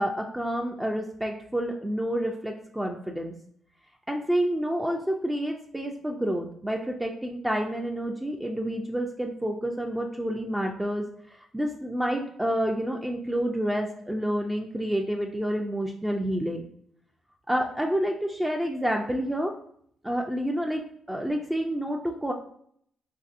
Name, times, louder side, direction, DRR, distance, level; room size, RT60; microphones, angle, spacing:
voice 1, 0.0-3.3 4.1-11.0 11.5-16.6 17.5-19.5 20.0-20.8 21.1-22.3, equal, 10° right, 1 dB, 0.3 m, -29 dB
3.2 x 2.6 x 2.4 m, 0.64 s
cardioid pair, 90°, 0 cm